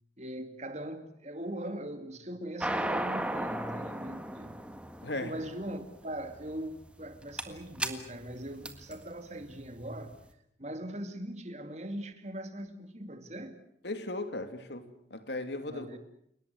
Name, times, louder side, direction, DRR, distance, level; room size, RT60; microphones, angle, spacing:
voice 1, 0.2-4.6 5.2-10.2 10.6-13.6 15.7-16.0, right 1 dB, 40° right, 2.5 m, -40 dB
sound 1, 2.6-10.1, right 1 dB, 5° right, 1.7 m, -36 dB
voice 2, 5.0-5.3 13.8-16.0, left 2 dB, 70° left, 2.7 m, -37 dB
30.0 x 18.5 x 8.0 m
head